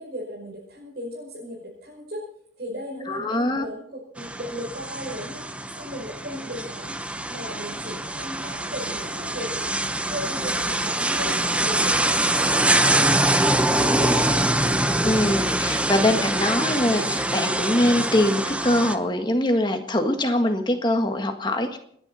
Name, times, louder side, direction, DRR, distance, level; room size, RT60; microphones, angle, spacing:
voice 1, 0.0-2.2 2.6-5.4 5.8-11.4 11.6-14.9, equal, 60° right, -5 dB, 5.5 m, -36 dB
voice 2, 3.1-3.7 15.0-21.8, left 1 dB, 25° left, 5 dB, 1.7 m, -23 dB
sound 1, 4.2-19.0, right 1 dB, 5° right, 0.8 m, -24 dB
sound 2, 11.1-12.0 13.5-14.3 16.4-17.2, equal, 45° right, 4.0 m, -39 dB
29.5 x 10.5 x 4.3 m, 0.66 s
head